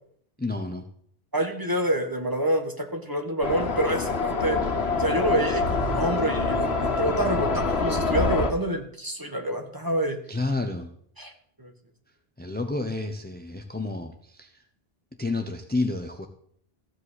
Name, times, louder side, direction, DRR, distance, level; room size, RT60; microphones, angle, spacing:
voice 1, 0.4-0.8 10.3-10.9 12.4-14.6 15.2-16.3, left 2 dB, 10° left, 5 dB, 0.8 m, -30 dB
voice 2, 1.3-4.6 5.0-10.2 11.2-11.3 11.6-11.7, right 1 dB, 20° right, 4 dB, 1.4 m, -27 dB
sound 1, 3.4-8.5, left 3 dB, 90° left, 1.6 m, -25 dB
15.0 x 5.2 x 8.2 m, 0.64 s
omnidirectional pair, 1.0 m